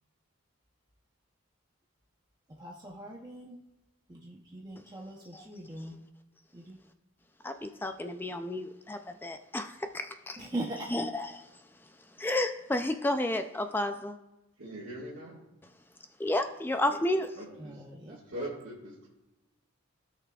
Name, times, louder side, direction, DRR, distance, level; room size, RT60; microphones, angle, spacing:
voice 1, 2.5-3.6 4.1-6.0 6.5-6.8 10.4-11.0 17.5-18.2, right 1 dB, 20° right, -2 dB, 0.7 m, -41 dB
voice 2, 7.4-10.4 10.9-11.3 12.2-14.2 16.2-17.3, left 1 dB, 10° left, 7 dB, 0.3 m, -31 dB
voice 3, 14.6-15.4 17.4-19.1, right 1 dB, 65° right, -7 dB, 1.8 m, -42 dB
16.5 x 5.8 x 2.3 m, 0.95 s
head